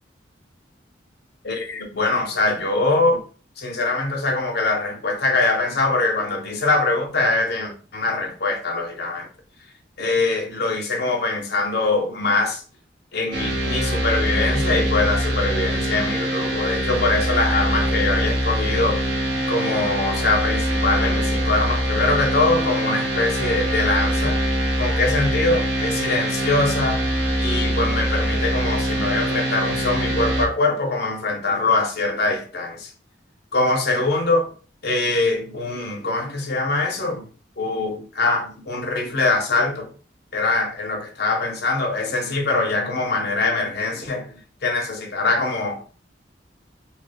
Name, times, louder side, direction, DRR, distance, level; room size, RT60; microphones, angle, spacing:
voice 1, 1.4-3.2 3.6-9.3 10.0-12.6 13.1-19.1 19.5-24.4 24.8-27.1 27.4-32.9 33.5-34.5 34.8-37.3 37.6-39.9 40.3-44.3 44.6-45.8, left 3 dB, 60° left, 0.8 m, -23 dB
sound 1, 13.3-30.5, right 1 dB, 65° right, 1.0 m, -23 dB
2.9 x 2.2 x 3.3 m
head